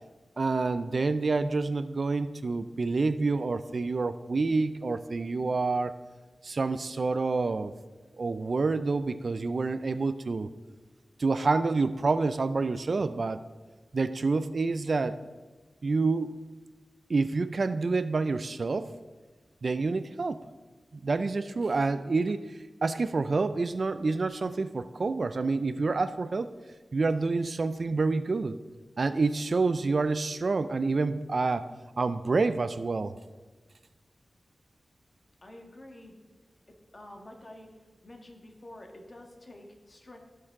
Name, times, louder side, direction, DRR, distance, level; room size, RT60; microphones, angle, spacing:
voice 1, 0.4-5.9 6.4-7.7 8.2-10.5 11.2-13.4 13.9-15.2 15.8-16.3 17.1-18.9 19.6-20.4 20.9-26.5 26.9-28.6 29.0-31.7 32.0-33.1, right 3 dB, 60° right, 12 dB, 0.4 m, -28 dB
voice 2, 35.4-36.1 36.7-37.7 38.0-40.2, left 1 dB, 40° left, 2 dB, 1.6 m, -48 dB
16.5 x 6.6 x 3.7 m, 1.3 s
wide cardioid pair, 100°, 0 cm